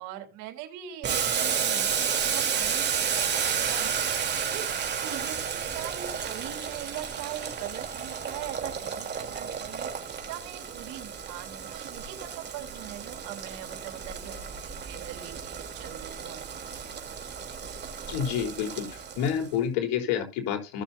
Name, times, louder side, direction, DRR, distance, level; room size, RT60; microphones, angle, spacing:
voice 1, 0.0-16.6, right 12 dB, 65° right, 6 dB, 3.6 m, -42 dB
Boiling, 1.0-19.5, right 7 dB, 30° right, 3.5 m, -32 dB
voice 2, 18.1-20.8, left 8 dB, 70° left, 4 dB, 3.9 m, -29 dB
17.5 x 7.1 x 2.7 m, 0.29 s
supercardioid pair, 110°, 32 cm